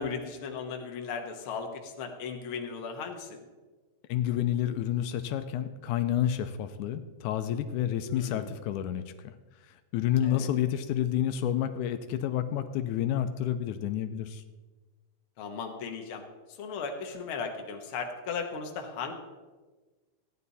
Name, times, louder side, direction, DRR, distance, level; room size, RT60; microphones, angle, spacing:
voice 1, 0.0-3.4 8.1-8.5 10.2-10.5 15.4-16.2 16.5-19.1, left 5 dB, 55° left, 3 dB, 1.9 m, -36 dB
voice 2, 4.1-9.3 9.9-14.4, left 11 dB, 85° left, 9 dB, 2.1 m, -29 dB
15.0 x 10.0 x 4.1 m, 1.3 s
omnidirectional pair, 3.5 m